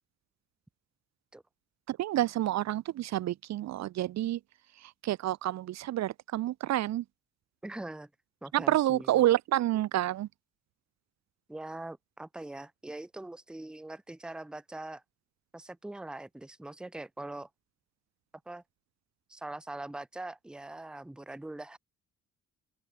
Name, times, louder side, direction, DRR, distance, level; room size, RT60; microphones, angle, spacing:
voice 1, 1.9-4.4 5.0-7.0 8.5-10.3, right 14 dB, 60° right, 0.6 m, -28 dB
voice 2, 7.6-8.1 8.4-9.2 11.5-15.0 15.5-17.5 18.5-18.6 19.3-21.8, right 2 dB, 5° right, 0.6 m, -42 dB
open air
cardioid pair, 90°, 30 cm